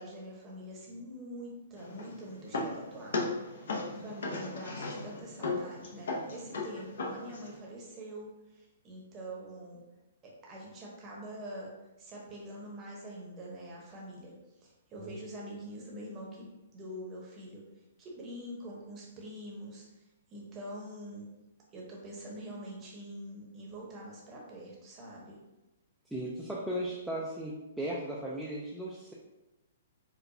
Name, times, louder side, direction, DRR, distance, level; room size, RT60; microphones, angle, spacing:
voice 1, 0.0-9.8 10.2-14.3 14.6-17.6 18.0-19.9 20.3-21.3 21.7-25.4, right 1 dB, 20° right, -3 dB, 0.8 m, -45 dB
sound 1, 1.8-7.6, left 3 dB, 75° left, 0.6 m, -37 dB
voice 2, 26.1-29.1, right 1 dB, ahead, -6 dB, 0.3 m, -36 dB
4.6 x 2.2 x 2.6 m, 1.0 s
hypercardioid pair, 165°, 0 cm